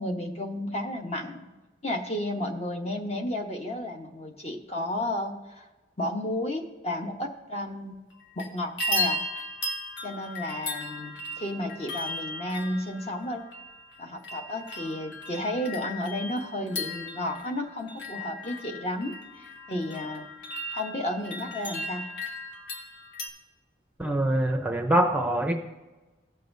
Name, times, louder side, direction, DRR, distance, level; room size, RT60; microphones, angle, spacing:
voice 1, 0.0-1.5 1.8-5.7 6.0-8.0 8.4-9.2 10.0-13.4 14.0-20.3 20.7-22.1, left 1 dB, 35° left, 3 dB, 1.0 m, -32 dB
sound 1, 8.1-8.5 8.8-23.3, left 1 dB, 75° left, 1.4 m, -36 dB
voice 2, 24.0-25.5, right 1 dB, 10° right, 3 dB, 0.6 m, -24 dB
16.5 x 6.6 x 2.6 m, 1.1 s
head